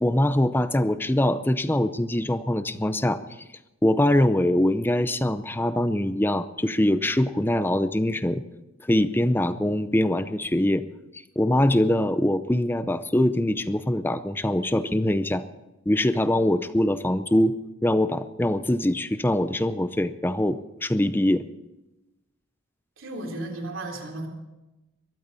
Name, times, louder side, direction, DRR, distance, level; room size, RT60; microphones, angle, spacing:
voice 1, 0.0-3.2 3.8-8.4 8.9-10.8 11.4-15.4 15.9-17.6 17.8-21.4, left 1 dB, 10° left, 12 dB, 0.6 m, -23 dB
voice 2, 23.0-24.3, right 2 dB, 70° right, 1 dB, 3.4 m, -34 dB
22.0 x 14.0 x 4.1 m, 1.0 s
head